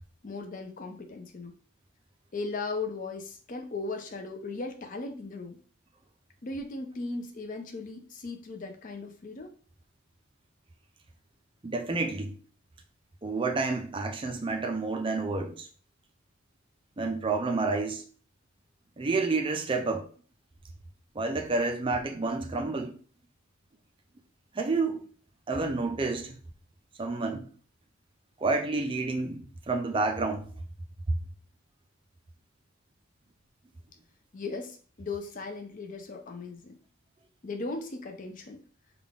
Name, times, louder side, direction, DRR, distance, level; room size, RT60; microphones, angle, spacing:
voice 1, 0.2-1.5 2.3-5.6 6.4-9.5 34.3-36.8 37.4-38.6, left 3 dB, 35° left, 0.4 m, -37 dB
voice 2, 11.6-12.3 13.2-15.7 17.0-18.0 19.0-20.1 21.2-23.0 24.5-25.0 25.5-26.4 27.0-27.5 28.4-30.5 31.1-31.2, right 3 dB, 25° right, 0.4 m, -29 dB
3.6 x 2.3 x 3.5 m
head